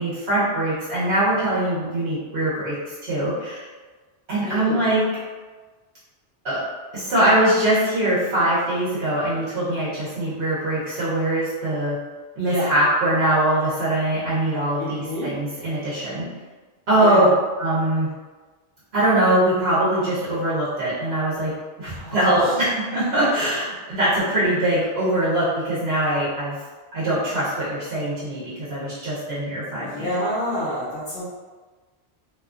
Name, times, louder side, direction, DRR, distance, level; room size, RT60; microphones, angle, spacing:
voice 1, 0.0-3.7 4.3-5.0 6.4-6.6 6.9-12.0 12.4-16.3 16.9-17.3 17.6-18.1 18.9-26.6 26.9-30.1, right 1 dB, 70° right, -10 dB, 1.1 m, -22 dB
voice 2, 4.5-4.9 12.4-12.7 14.8-15.3 17.0-17.3 21.9-22.5 29.8-31.2, left 1 dB, 60° left, -8 dB, 1.1 m, -28 dB
2.8 x 2.3 x 2.4 m, 1.3 s
omnidirectional pair, 1.1 m